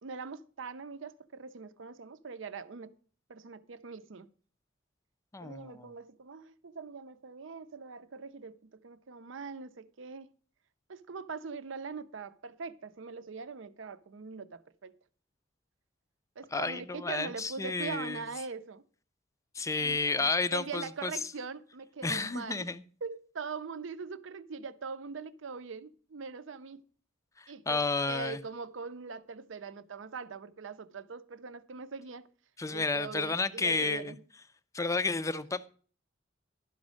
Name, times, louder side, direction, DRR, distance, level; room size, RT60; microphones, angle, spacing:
voice 1, 0.0-2.9 3.3-4.3 5.4-10.3 10.9-14.9 16.4-18.8 19.8-22.7 23.0-26.8 27.5-32.3 32.7-34.2, right 5 dB, 70° right, 0.6 m, -42 dB
voice 2, 5.3-5.9 16.5-18.2 19.5-21.1 22.0-22.8 27.4-28.4 32.6-34.1 34.7-35.7, left 3 dB, 15° left, 0.5 m, -31 dB
12.0 x 5.3 x 6.2 m
head